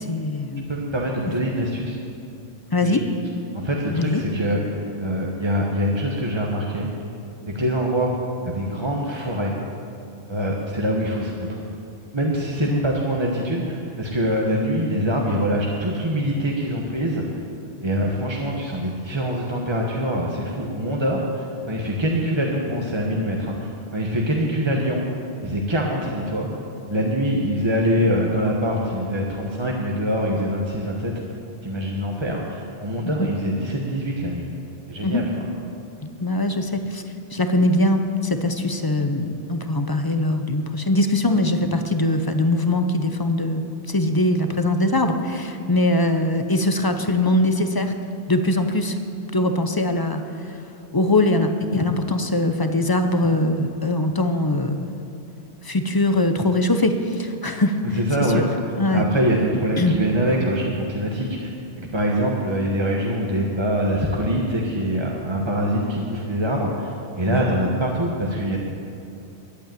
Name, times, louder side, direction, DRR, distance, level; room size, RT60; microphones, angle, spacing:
voice 1, 0.0-0.6 2.7-3.0 3.9-4.2 12.6-12.8 33.0-33.3 35.0-35.2 36.0-37.0 37.3-43.6 43.9-47.9 48.3-49.0 49.3-50.6 50.9-54.9 55.6-58.0 58.3-58.5 58.8-59.0 59.8-59.9 67.3-67.4, left 1 dB, 25° left, 7 dB, 0.6 m, -22 dB
voice 2, 0.7-2.0 2.8-3.0 3.5-6.9 7.5-8.2 8.4-9.6 10.3-11.5 12.1-17.2 17.8-25.0 25.4-26.5 26.9-31.1 31.6-34.4 34.9-35.2 57.9-58.4 58.9-61.5 61.8-68.6, equal, 25° right, -2 dB, 1.1 m, -24 dB
11.5 x 8.6 x 9.0 m, 2.7 s
omnidirectional pair, 1.1 m